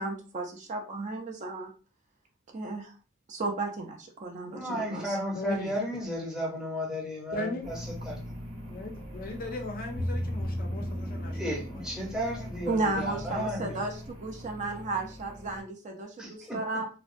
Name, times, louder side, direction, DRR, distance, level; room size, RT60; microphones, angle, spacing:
voice 1, 0.0-1.7 2.5-2.9 3.3-5.2 12.7-16.9, right 3 dB, 35° right, 0.4 m, -34 dB
voice 2, 4.5-8.2 11.3-13.8 16.2-16.6, equal, 5° right, 0.8 m, -34 dB
voice 3, 5.4-5.7 7.3-7.7 8.7-11.4 11.7-11.8, left 2 dB, 45° left, 0.4 m, -37 dB
sound 1, 7.6-15.6, equal, 75° right, 1.1 m, -37 dB
2.6 x 2.0 x 2.5 m
head